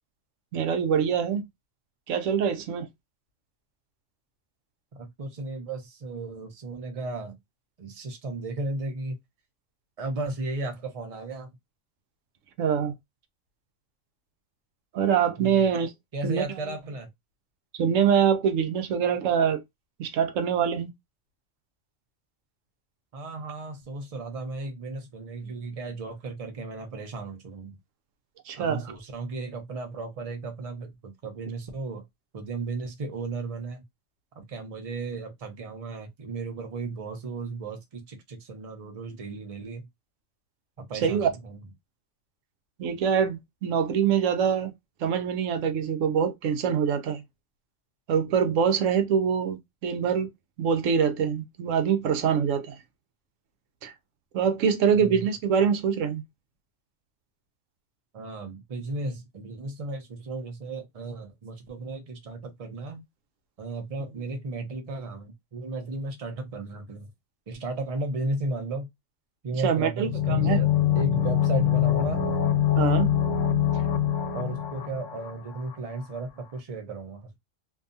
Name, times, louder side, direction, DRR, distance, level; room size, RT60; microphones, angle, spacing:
voice 1, 0.5-1.4 2.1-2.9 12.6-12.9 14.9-15.9 16.2-16.4 17.7-19.6 20.0-20.9 28.5-28.8 41.0-41.3 42.8-44.7 45.0-47.2 48.1-50.3 50.6-52.8 53.8-53.9 54.3-56.2 69.6-70.6 72.8-73.1, right 7 dB, 85° right, 1.0 m, -24 dB
voice 2, 5.0-7.4 7.8-9.2 10.0-11.5 15.4-15.7 16.1-17.1 23.1-27.8 28.6-32.0 32.3-33.8 34.4-39.9 40.8-41.6 54.9-55.2 58.1-63.0 63.6-67.1 67.5-68.9 69.4-70.7 70.9-72.2 74.3-77.3, right 3 dB, 35° right, 0.7 m, -35 dB
sound 1, 70.0-75.7 76.0-76.1, left 10 dB, 80° left, 1.0 m, -24 dB
2.7 x 2.3 x 2.5 m
omnidirectional pair, 1.3 m